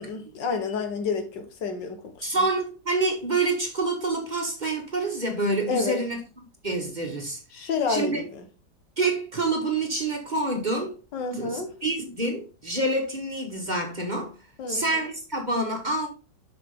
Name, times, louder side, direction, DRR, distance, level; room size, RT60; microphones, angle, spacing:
voice 1, 0.0-2.3 5.7-6.0 7.5-8.5 11.1-11.7 14.6-14.8, left 5 dB, 85° left, 2.0 m, -29 dB
voice 2, 2.2-6.2 6.6-8.2 9.0-11.0 11.4-14.3 14.7-16.1, right 2 dB, 30° right, 1.3 m, -27 dB
7.5 x 5.9 x 3.7 m
omnidirectional pair, 1.9 m